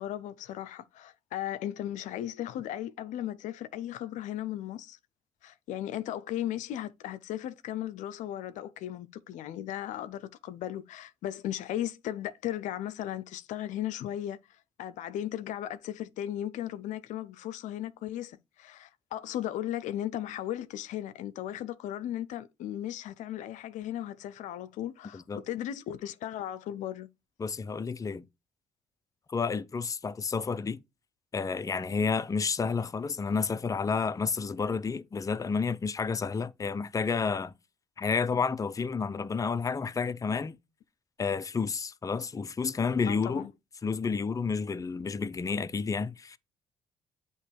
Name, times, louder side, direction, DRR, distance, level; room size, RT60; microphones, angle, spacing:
voice 1, 0.0-5.0 5.4-14.4 14.8-27.1 43.1-43.5, left 12 dB, 75° left, 0.5 m, -36 dB
voice 2, 27.4-28.2 29.3-30.8 31.3-37.5 38.0-40.6 41.2-43.5 43.8-46.4, left 5 dB, 25° left, 0.5 m, -30 dB
8.2 x 3.0 x 4.5 m
supercardioid pair, 65°, 13 cm